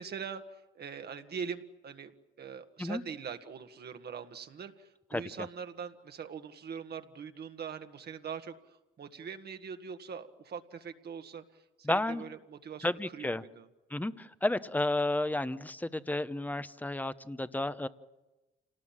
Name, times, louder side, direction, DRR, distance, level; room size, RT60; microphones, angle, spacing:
voice 1, 0.0-2.1 2.4-13.7, right 6 dB, 55° right, 7 dB, 1.7 m, -42 dB
voice 2, 11.8-12.2 12.8-13.4 13.9-17.9, left 2 dB, 10° left, 13 dB, 0.9 m, -32 dB
28.0 x 19.0 x 7.4 m, 1.1 s
cardioid pair, 90°, 20 cm